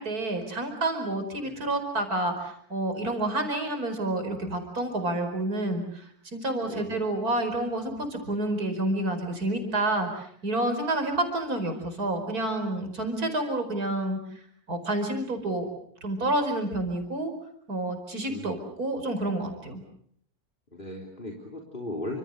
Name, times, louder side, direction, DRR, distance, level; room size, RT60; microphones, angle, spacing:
voice 1, 0.0-14.2 14.7-15.7 16.0-17.3 17.7-19.8, right 1 dB, 80° right, 6 dB, 5.3 m, -29 dB
voice 2, 6.6-7.0 18.3-18.6 20.7-22.2, left 1 dB, 35° left, 1 dB, 3.8 m, -37 dB
29.0 x 26.5 x 6.6 m, 0.67 s
omnidirectional pair, 1.6 m